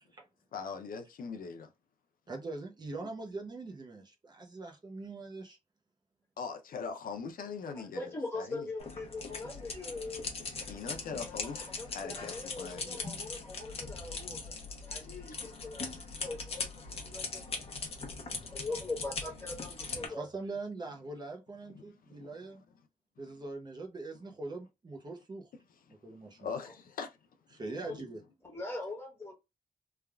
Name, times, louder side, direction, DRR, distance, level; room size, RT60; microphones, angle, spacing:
voice 1, 0.5-1.7 6.4-8.7 10.7-13.0 21.7-22.3 26.4-27.2 27.9-28.1, left 5 dB, 80° left, 0.5 m, -41 dB
voice 2, 2.3-5.6 20.0-22.6 23.2-25.5 26.0-26.5 27.5-28.2, right 3 dB, 30° right, 0.6 m, -42 dB
voice 3, 7.7-10.2 11.1-17.4 18.4-20.2 27.7-28.0 28.4-29.3, left 2 dB, 15° left, 1.3 m, -42 dB
sound 1, 8.8-20.1, left 4 dB, 45° left, 0.7 m, -41 dB
3.3 x 2.3 x 2.3 m
wide cardioid pair, 180°, 14 cm